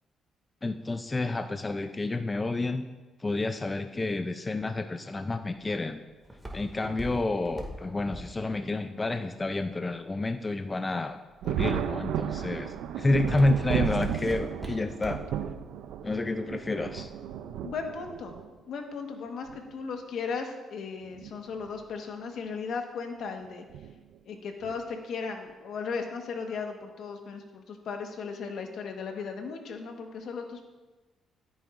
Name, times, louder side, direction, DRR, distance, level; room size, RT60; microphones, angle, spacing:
voice 1, 0.6-2.9 3.2-6.0 6.5-11.2 11.4-15.2 16.0-17.1, left 2 dB, 25° left, 8 dB, 0.5 m, -29 dB
Walk footsteps, 5.2-10.3 10.9-11.3 11.9-12.2 12.6-15.4 15.8-15.9, right 1 dB, 10° right, 2.1 m, -40 dB
Thunder, 11.4-18.5 19.5-19.6 21.0-21.3 21.7-21.8 23.7-23.9 24.6-25.0, right 9 dB, 85° right, 0.4 m, -33 dB
voice 2, 17.6-18.4 18.7-23.6 24.3-30.6, left 5 dB, 70° left, 4 dB, 1.3 m, -36 dB
13.5 x 8.9 x 2.6 m, 1.2 s
cardioid pair, 90°, 0 cm